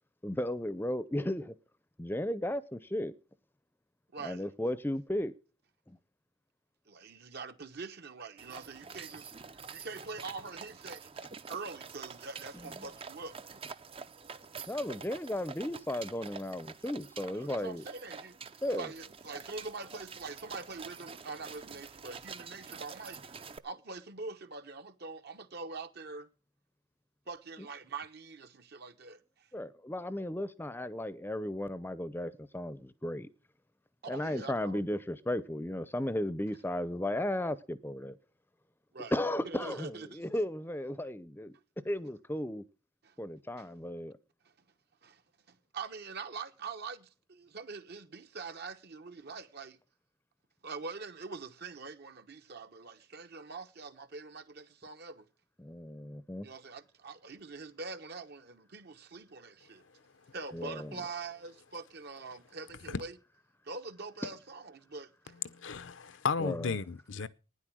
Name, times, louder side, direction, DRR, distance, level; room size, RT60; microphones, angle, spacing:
voice 1, 0.2-1.5 2.0-3.1 4.2-5.3 5.9-6.0 14.7-17.8 18.6-18.9 27.6-27.7 29.5-33.3 34.0-38.2 39.1-41.6 41.8-42.6 43.2-44.2 55.6-56.5 60.5-60.9 66.4-66.7, left 1 dB, 10° left, 0.6 m, -35 dB
voice 2, 4.1-4.4 6.9-13.3 17.2-18.3 18.7-26.3 27.3-29.5 34.0-34.8 38.9-39.1 39.4-40.2 43.0-43.2 43.6-43.7 45.0-45.2 45.5-49.8 50.6-55.3 56.4-59.8 60.3-63.2 63.6-65.3, right 4 dB, 55° right, 1.1 m, -44 dB
sound 1, 8.4-23.6, right 5 dB, 30° right, 0.6 m, -47 dB
voice 3, 65.4-67.3, left 5 dB, 70° left, 0.7 m, -34 dB
12.5 x 9.9 x 6.2 m
head